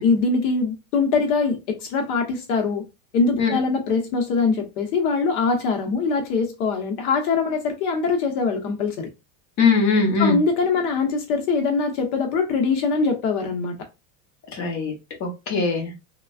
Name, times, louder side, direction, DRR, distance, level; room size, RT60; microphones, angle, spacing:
voice 1, 0.0-2.8 3.1-9.1 10.2-13.8, left 4 dB, 80° left, 1.0 m, -22 dB
voice 2, 9.6-10.4 14.5-14.9 15.2-15.9, left 4 dB, 40° left, 1.1 m, -21 dB
3.2 x 2.3 x 2.3 m
supercardioid pair, 150°, 44 cm